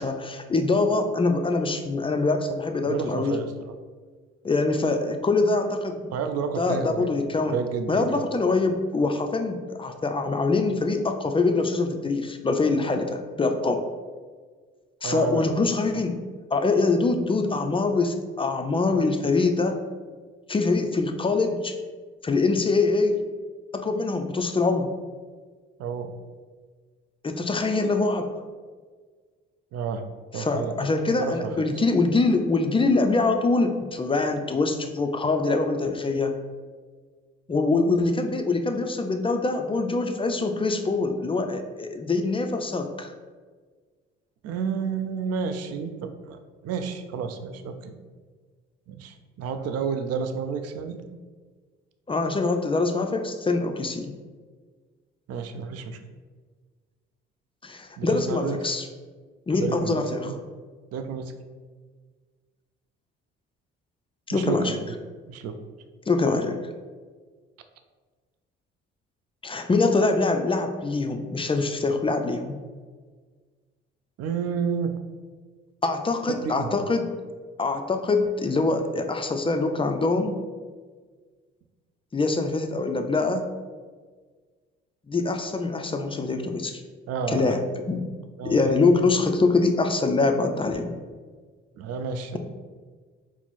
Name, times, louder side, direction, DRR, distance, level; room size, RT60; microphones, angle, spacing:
voice 1, 0.0-3.4 4.4-6.1 6.6-7.6 7.9-13.8 15.0-16.2 16.5-19.8 20.5-21.8 22.2-23.2 23.7-24.9 27.2-28.3 30.3-36.3 37.5-43.1 52.1-54.1 57.6-58.9 59.5-60.3 64.3-64.8 66.1-66.6 69.4-72.5 75.8-77.1 77.6-80.4 82.1-83.5 85.1-86.8 87.3-88.0 88.4-90.9, left 3 dB, 20° left, 5 dB, 0.4 m, -24 dB
voice 2, 2.9-3.7 6.1-7.1 7.4-8.2 15.0-15.4 25.8-26.1 29.7-30.0 30.3-30.7 31.2-31.6 44.4-47.9 48.9-51.0 55.3-56.0 58.0-58.6 59.6-60.4 60.9-61.3 64.3-64.7 65.3-65.6 74.2-75.0 76.4-76.8 87.1-87.6 88.4-88.8 91.8-92.4, right 6 dB, 55° right, 7 dB, 0.5 m, -30 dB
4.4 x 2.0 x 4.0 m, 1.5 s
hypercardioid pair, 50°, 30 cm